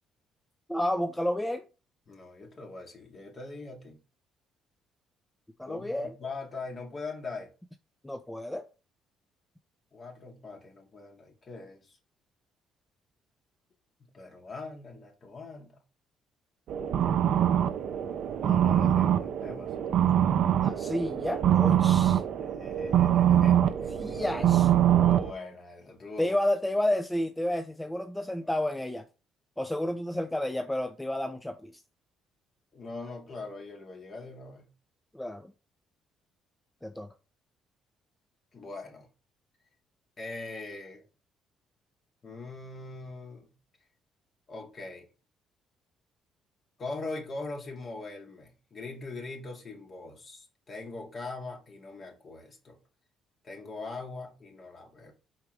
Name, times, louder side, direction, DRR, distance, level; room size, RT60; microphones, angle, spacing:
voice 1, 0.7-1.7 5.6-6.1 8.0-8.6 20.6-22.2 24.0-24.7 26.2-29.0 29.6-31.7 35.1-35.5 36.8-37.1, left 1 dB, 10° left, 0.6 m, -31 dB
voice 2, 2.1-4.0 5.7-7.5 9.9-12.0 14.0-15.8 18.4-19.9 22.4-24.2 24.9-26.3 32.7-34.7 38.5-39.1 40.2-41.0 42.2-43.5 44.5-45.1 46.8-52.8 53.4-55.1, left 3 dB, 45° left, 2.5 m, -41 dB
sound 1, 16.7-25.3, right 10 dB, 65° right, 0.6 m, -24 dB
4.7 x 4.4 x 5.3 m
supercardioid pair, 75°, 0 cm